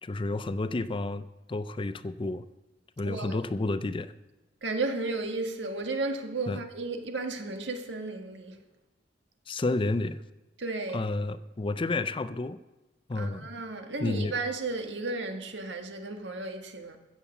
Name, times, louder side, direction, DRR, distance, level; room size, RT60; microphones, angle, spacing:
voice 1, 0.0-2.4 3.0-4.1 6.5-6.6 9.5-10.2 10.9-12.6 13.1-13.5 14.0-14.3, left 2 dB, 30° left, 0.5 m, -30 dB
voice 2, 3.0-3.4 4.6-8.6 10.6-11.1 13.1-17.0, right 3 dB, 90° right, 1.6 m, -34 dB
15.5 x 7.5 x 7.1 m
head